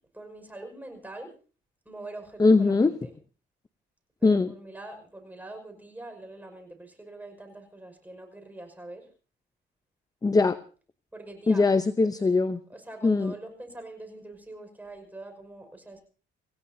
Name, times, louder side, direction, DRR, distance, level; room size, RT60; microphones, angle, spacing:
voice 1, 0.1-1.3 1.9-3.1 4.2-9.1 11.1-11.7 12.7-16.0, right 2 dB, 10° right, 4 dB, 5.5 m, -44 dB
voice 2, 2.4-2.9 4.2-4.5 10.2-10.6 11.5-12.6 13.0-13.3, left 3 dB, 20° left, 12 dB, 0.7 m, -21 dB
27.0 x 16.5 x 2.8 m, 0.37 s
cardioid pair, 90°, 20 cm